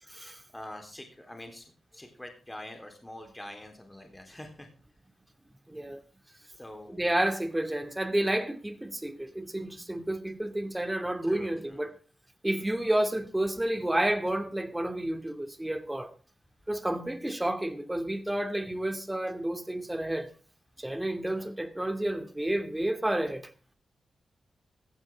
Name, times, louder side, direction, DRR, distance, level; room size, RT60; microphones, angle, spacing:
voice 1, 0.5-4.7 6.6-7.2 11.2-11.9 21.3-21.5, left 1 dB, 15° left, 3.8 m, -45 dB
voice 2, 5.7-6.0 6.9-12.0 12.4-16.1 16.7-20.3 20.8-23.5, right 1 dB, 15° right, 2.5 m, -30 dB
15.5 x 15.0 x 3.7 m
supercardioid pair, 40°, 0 cm